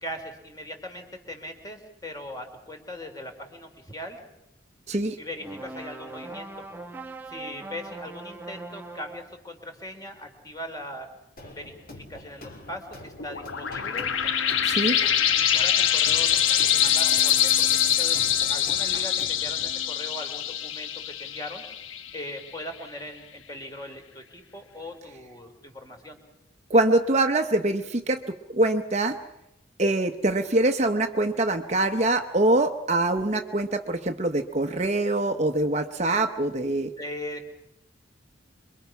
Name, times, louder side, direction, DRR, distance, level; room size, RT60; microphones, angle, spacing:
voice 1, 0.0-4.2 5.2-6.6 7.3-11.1 11.4-14.1 14.7-21.6 22.1-26.2 37.0-37.5, left 1 dB, 20° left, 4 dB, 3.1 m, -40 dB
sound 1, 5.4-9.4, right 2 dB, 10° right, 1.2 m, -40 dB
sound 2, 11.4-19.7, left 1 dB, 45° left, 3.5 m, -45 dB
sound 3, 13.2-22.4, left 10 dB, 85° left, 1.2 m, -24 dB
voice 2, 14.6-15.0 26.7-29.2 29.8-36.9, right 2 dB, 35° right, 7 dB, 0.8 m, -24 dB
26.0 x 23.0 x 5.9 m, 0.88 s
head